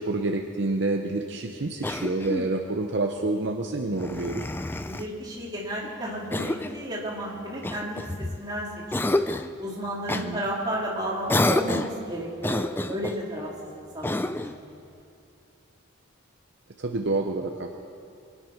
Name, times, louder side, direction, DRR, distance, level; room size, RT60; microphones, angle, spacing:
voice 1, 0.0-4.5 10.1-10.4 16.8-17.8, right 2 dB, 55° right, 3 dB, 0.8 m, -28 dB
Cough, 1.8-2.6 3.9-5.1 6.3-6.8 7.6-8.5 8.9-9.5 10.1-10.3 11.3-12.0 12.4-13.2 14.0-14.6, left 1 dB, 10° left, 0.3 m, -28 dB
voice 2, 4.8-8.7 9.0-9.1 9.6-14.4 14.7-14.8, equal, 20° right, -5 dB, 3.1 m, -33 dB
23.5 x 9.9 x 5.8 m, 2.5 s
head